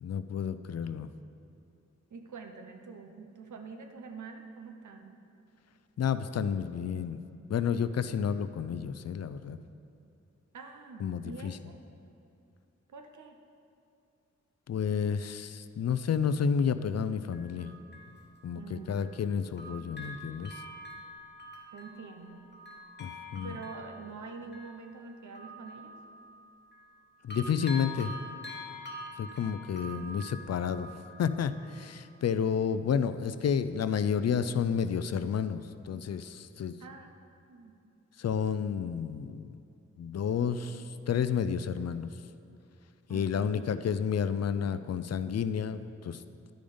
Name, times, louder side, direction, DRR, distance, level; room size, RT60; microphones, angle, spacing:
voice 1, 0.0-1.1 6.0-7.2 7.5-9.6 11.0-11.6 14.7-17.7 18.4-20.6 23.0-23.6 27.2-28.1 29.2-30.9 31.2-36.7 38.2-39.6 40.0-42.1 43.1-46.2, left 7 dB, 60° left, 12 dB, 0.4 m, -31 dB
voice 2, 2.1-5.1 10.5-11.7 12.9-13.4 18.5-19.2 21.7-22.5 23.4-25.9 36.8-37.1 37.5-37.7 43.1-43.6, right 4 dB, 80° right, 5 dB, 0.8 m, -46 dB
Bell, 17.3-19.3 19.6-27.0 27.3-31.9 32.3-32.4, left 1 dB, 35° left, 1.1 m, -46 dB
10.5 x 5.1 x 5.4 m, 2.5 s
cardioid pair, 50°, 29 cm